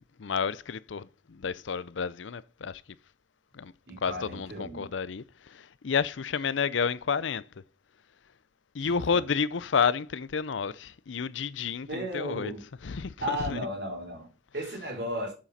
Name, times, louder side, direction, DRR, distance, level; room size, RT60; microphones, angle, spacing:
voice 1, 0.2-2.8 3.5-3.7 4.0-7.4 8.7-12.5 12.8-13.6, left 6 dB, 80° left, 0.5 m, -30 dB
voice 2, 3.9-4.9 8.8-9.2 11.9-12.6 13.2-15.3, equal, 60° right, 4.0 m, -35 dB
8.4 x 7.4 x 4.2 m
head